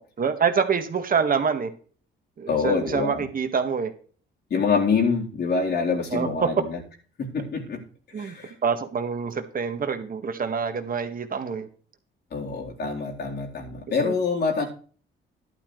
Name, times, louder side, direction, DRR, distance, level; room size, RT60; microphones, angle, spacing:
voice 1, 0.2-1.7 2.4-3.9 6.1-6.5 8.1-8.4 8.6-11.7 14.0-14.2, right 6 dB, 45° right, 7 dB, 1.8 m, -26 dB
voice 2, 2.5-3.3 4.5-6.8 7.2-7.8 8.2-8.5 12.3-14.7, left 5 dB, 55° left, 0 dB, 4.1 m, -26 dB
11.5 x 11.5 x 3.3 m, 0.41 s
cardioid pair, 90°, 20 cm